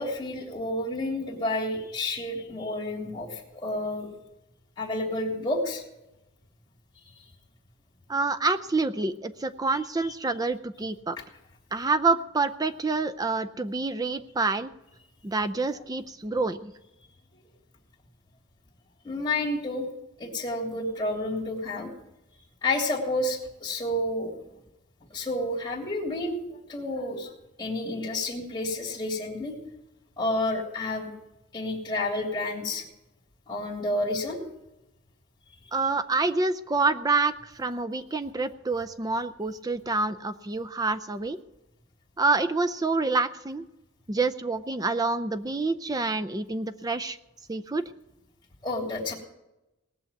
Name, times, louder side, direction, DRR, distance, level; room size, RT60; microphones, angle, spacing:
voice 1, 0.0-4.1 4.8-5.8 19.0-19.9 20.2-21.9 22.6-24.3 25.1-26.4 26.7-27.3 27.6-29.6 30.2-31.1 31.5-32.8 33.5-34.4 48.6-49.1, left 2 dB, 20° left, -3 dB, 3.1 m, -30 dB
voice 2, 8.1-11.2 11.7-14.7 15.2-16.7 35.7-41.4 42.2-43.6 44.1-47.2 47.5-47.8, right 3 dB, 20° right, 9 dB, 0.5 m, -27 dB
19.0 x 7.1 x 9.2 m, 0.93 s
head